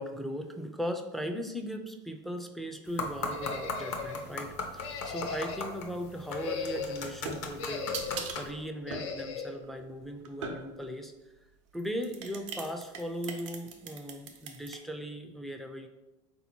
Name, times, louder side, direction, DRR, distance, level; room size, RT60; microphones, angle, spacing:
voice 1, 0.0-11.1 11.7-15.9, equal, ahead, 4 dB, 0.4 m, -38 dB
sound 1, 2.9-8.5, left 3 dB, 50° left, 0.8 m, -39 dB
sound 2, 3.3-4.2 4.8-5.8 6.2-7.1 7.6-8.3 8.9-9.5, left 5 dB, 75° left, 0.6 m, -38 dB
sound 3, 6.8-11.0 11.7-14.8, right 4 dB, 85° right, 0.7 m, -41 dB
4.0 x 2.8 x 4.3 m, 1.0 s
supercardioid pair, 115°, 16 cm